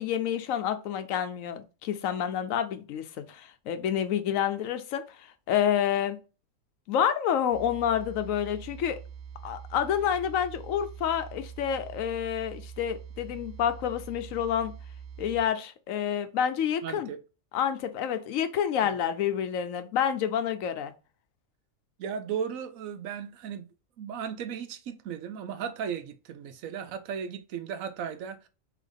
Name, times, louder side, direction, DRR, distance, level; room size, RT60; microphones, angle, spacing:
voice 1, 0.0-6.2 6.9-9.0 9.4-14.7 15.2-17.1 17.5-20.9, left 9 dB, 90° left, 1.0 m, -28 dB
sound 1, 7.5-15.5, right 7 dB, 60° right, 0.5 m, -44 dB
voice 2, 16.8-17.2 18.8-18.9 22.0-23.7 24.0-28.5, right 7 dB, 85° right, 1.1 m, -36 dB
3.8 x 3.0 x 3.4 m
omnidirectional pair, 1.4 m